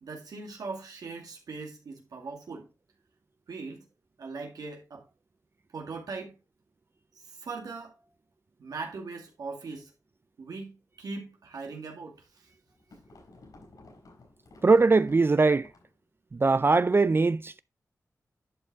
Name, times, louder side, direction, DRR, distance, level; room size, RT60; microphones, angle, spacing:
voice 1, 0.0-2.7 3.5-3.8 4.2-5.0 5.7-6.3 7.4-8.0 8.6-9.9 10.4-12.2, right 4 dB, 90° right, 2.1 m, -40 dB
sound 1, 12.2-16.0, left 2 dB, 70° left, 5.7 m, -54 dB
voice 2, 14.6-15.7 16.3-17.6, right 3 dB, 40° right, 0.4 m, -21 dB
11.5 x 5.3 x 3.5 m
cardioid pair, 50°, 6 cm